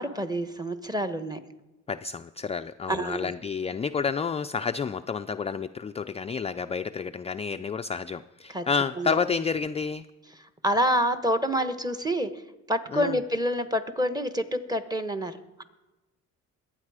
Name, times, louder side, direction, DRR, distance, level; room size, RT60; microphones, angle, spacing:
voice 1, 0.0-1.4 2.9-3.3 8.5-8.7 9.0-9.2 10.4-12.4 12.7-15.6, equal, 15° right, 11 dB, 1.1 m, -28 dB
voice 2, 1.9-10.1 12.9-13.2, left 5 dB, 20° left, 8 dB, 0.4 m, -30 dB
22.0 x 8.9 x 4.9 m, 1.1 s
cardioid pair, 90°, 30 cm